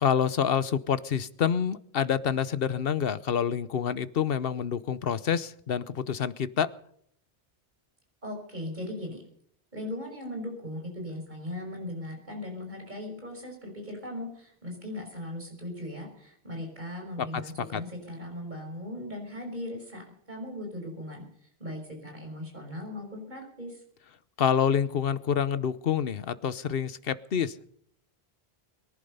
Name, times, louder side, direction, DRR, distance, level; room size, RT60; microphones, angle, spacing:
voice 1, 0.0-6.7 17.7-17.8 24.4-27.7, left 8 dB, 65° left, 16 dB, 1.0 m, -27 dB
voice 2, 8.2-9.3 9.7-23.8, left 1 dB, 45° right, 1 dB, 5.9 m, -38 dB
23.0 x 11.0 x 5.5 m, 0.67 s
omnidirectional pair, 1.1 m